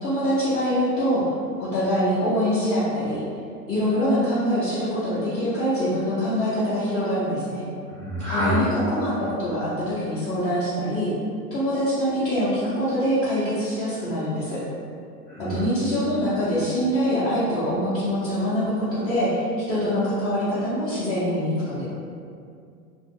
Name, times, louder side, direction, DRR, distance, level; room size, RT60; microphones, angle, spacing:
voice 1, 0.0-3.2 3.7-7.7 8.3-11.1 11.5-14.6 15.4-21.8, equal, 30° left, -10 dB, 0.7 m, -24 dB
voice 2, 7.9-8.5 15.3-15.6, right 1 dB, 5° left, -15 dB, 0.3 m, -28 dB
2.4 x 2.4 x 2.7 m, 2.3 s
figure-of-eight pair, 80°, 47 cm